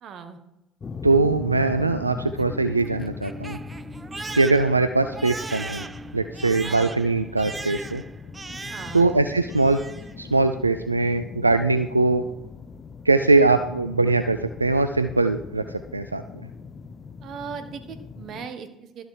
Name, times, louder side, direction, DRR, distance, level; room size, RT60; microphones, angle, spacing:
voice 1, 0.0-0.4 6.4-6.9 8.7-9.1 17.2-19.1, right 6 dB, 50° right, 9 dB, 1.3 m, -38 dB
sound 1, 0.8-18.5, left 5 dB, 35° left, 0.8 m, -39 dB
voice 2, 1.0-3.6 4.3-5.8 6.1-8.0 8.9-9.8 10.2-12.2 13.1-15.6 15.9-16.2, right 3 dB, 90° right, 9 dB, 0.3 m, -21 dB
Crying sobbing, 2.2-9.2 9.5-10.1, right 3 dB, 20° right, 0.6 m, -38 dB
12.5 x 6.5 x 4.7 m, 0.94 s
figure-of-eight pair, 60°, 0 cm